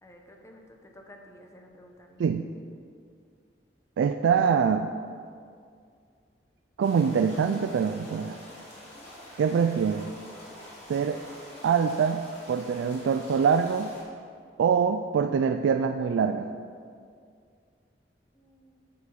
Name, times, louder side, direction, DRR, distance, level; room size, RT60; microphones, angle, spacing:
voice 1, 0.0-2.2 18.3-18.8, left 1 dB, 15° left, 2 dB, 0.9 m, -52 dB
voice 2, 4.0-4.9 6.8-8.4 9.4-10.1 10.9-11.2 11.6-13.9 14.6-16.5, right 6 dB, 85° right, 8 dB, 0.3 m, -24 dB
sound 1, 6.8-14.0, left 1 dB, 35° left, 2.3 m, -46 dB
7.6 x 6.0 x 5.8 m, 2.2 s
head